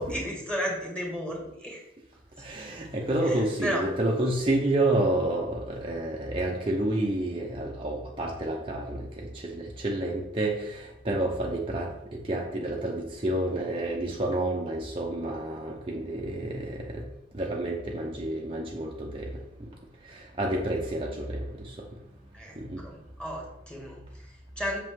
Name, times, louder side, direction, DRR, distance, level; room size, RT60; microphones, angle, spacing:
voice 1, 0.0-1.8 2.9-3.8 22.3-24.8, equal, 5° left, -2 dB, 2.1 m, -34 dB
voice 2, 2.4-17.0 17.3-19.3 20.1-21.8 22.6-22.8, right 1 dB, 30° right, -1 dB, 0.9 m, -29 dB
8.0 x 6.8 x 3.8 m, 0.85 s
head